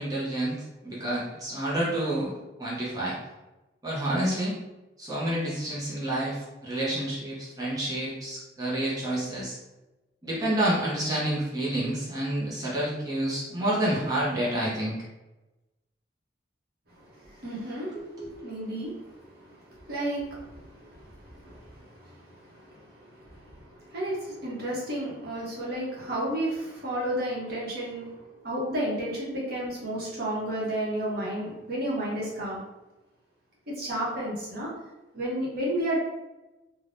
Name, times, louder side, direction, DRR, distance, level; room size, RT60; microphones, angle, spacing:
voice 1, 0.0-2.3 2.6-3.2 3.8-4.5 5.0-9.6 10.2-15.0 17.9-18.3, right 1 dB, 20° right, -7 dB, 0.6 m, -29 dB
voice 2, 17.0-18.0 18.3-28.1 28.4-32.6 33.7-34.7 35.1-36.0, right 1 dB, 55° right, -5 dB, 1.0 m, -32 dB
3.3 x 2.2 x 2.5 m, 1.0 s
head